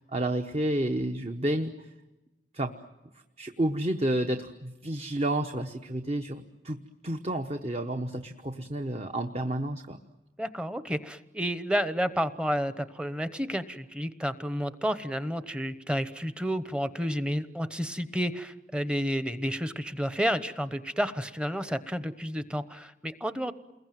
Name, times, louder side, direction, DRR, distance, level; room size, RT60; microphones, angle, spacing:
voice 1, 0.0-1.9 2.5-2.7 3.4-10.0, right 1 dB, 35° right, 6 dB, 1.1 m, -30 dB
voice 2, 10.4-23.5, equal, 5° right, 12 dB, 1.0 m, -31 dB
29.0 x 21.5 x 9.2 m, 1.1 s
head